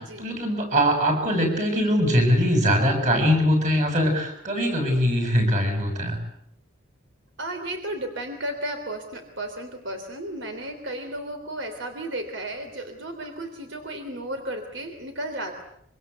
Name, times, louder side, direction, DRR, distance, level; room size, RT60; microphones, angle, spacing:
voice 1, 0.0-6.2, equal, 35° right, 5 dB, 7.4 m, -22 dB
voice 2, 7.4-15.6, right 1 dB, 70° right, 6 dB, 3.4 m, -34 dB
25.5 x 25.0 x 8.2 m, 0.74 s
head